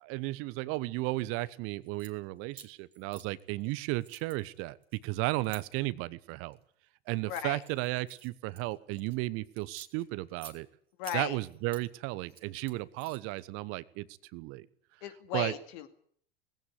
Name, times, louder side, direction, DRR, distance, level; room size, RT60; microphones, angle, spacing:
voice 1, 0.0-4.8 5.0-6.6 7.1-10.7 11.1-14.1 14.3-14.7 15.3-15.5, right 20 dB, 45° right, 17 dB, 1.0 m, -34 dB
sound 1, 1.8-2.1 2.5-3.7 4.0-5.6 6.3-6.6 7.1-9.2 9.6-10.6 11.0-11.9 12.2-13.4, right 6 dB, 85° right, 2.5 m, -51 dB
voice 2, 7.3-7.6 11.0-11.4 15.0-15.9, left 10 dB, 55° left, 9 dB, 2.4 m, -36 dB
19.5 x 16.0 x 9.7 m, 0.62 s
figure-of-eight pair, 75°, 30 cm